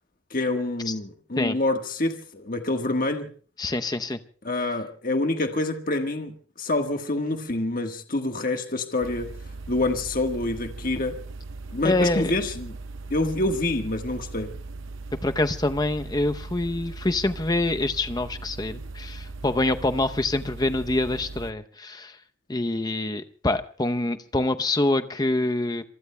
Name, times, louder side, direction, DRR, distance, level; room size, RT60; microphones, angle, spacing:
voice 1, 0.3-3.3 4.4-6.3 6.6-9.3 9.7-11.2 11.7-12.8 13.1-14.5, left 2 dB, 45° left, 5 dB, 1.4 m, -26 dB
voice 2, 3.6-4.2 11.8-12.3 15.2-22.2 22.5-25.8, left 2 dB, 20° left, 8 dB, 0.7 m, -25 dB
sound 1, 9.0-21.5, right 3 dB, 70° right, 0.7 m, -39 dB
27.0 x 24.0 x 2.2 m, 0.42 s
head